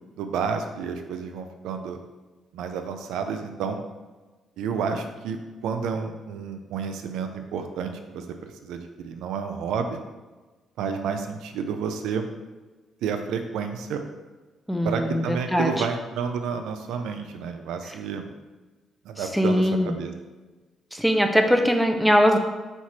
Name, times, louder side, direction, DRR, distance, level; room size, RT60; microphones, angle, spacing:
voice 1, 0.2-2.0 2.5-3.8 4.6-5.4 5.6-10.0 10.8-12.3 13.0-14.0 14.8-18.3 19.0-20.1, right 6 dB, 85° right, 6 dB, 0.4 m, -30 dB
voice 2, 14.7-15.8 19.3-19.9 20.9-22.4, equal, ahead, 4 dB, 0.5 m, -21 dB
4.5 x 2.4 x 4.2 m, 1.3 s
cardioid pair, 90°, 0 cm